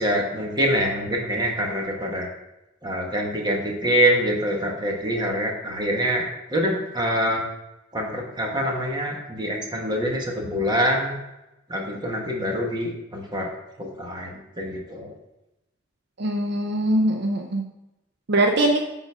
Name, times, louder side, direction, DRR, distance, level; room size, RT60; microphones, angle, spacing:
voice 1, 0.0-2.3 2.8-7.4 7.9-11.2 11.7-13.5 13.8-15.1, equal, 20° right, 0 dB, 1.4 m, -25 dB
voice 2, 16.2-17.6 18.3-18.8, right 1 dB, 60° right, 3 dB, 0.6 m, -22 dB
8.9 x 3.9 x 5.0 m, 0.93 s
head